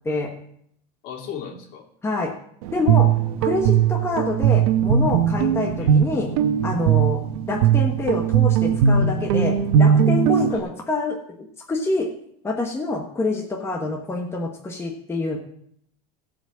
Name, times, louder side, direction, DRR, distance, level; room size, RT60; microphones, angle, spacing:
voice 1, 1.0-1.8 5.5-6.0 10.5-10.6, left 7 dB, 55° left, 0 dB, 2.7 m, -36 dB
voice 2, 2.0-2.3 2.7-3.1 3.4-6.3 6.6-7.2 7.5-11.2 11.7-12.1 12.4-15.4, left 2 dB, 15° left, 1 dB, 1.3 m, -26 dB
Guitar, 2.6-10.6, right 8 dB, 75° right, 1.2 m, -19 dB
15.5 x 5.2 x 7.4 m, 0.69 s
supercardioid pair, 140°, 19 cm